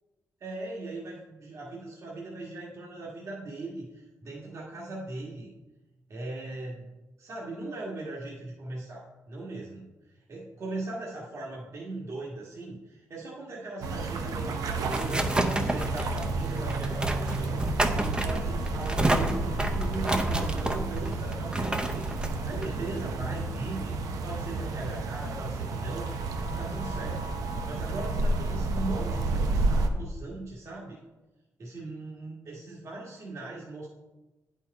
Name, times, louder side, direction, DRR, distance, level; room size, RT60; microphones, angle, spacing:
voice 1, 0.4-5.5 6.1-6.9 7.2-22.1 22.4-24.0 24.2-26.1 26.6-27.3 27.6-31.0 31.6-33.9, right 2 dB, 55° right, -4 dB, 1.5 m, -39 dB
sound 1, 13.8-29.9, right 3 dB, 85° right, 0.7 m, -31 dB
sound 2, 14.3-23.6, right 1 dB, 15° right, 0.6 m, -31 dB
9.7 x 4.5 x 4.7 m, 1.1 s
cardioid pair, 105°, 6 cm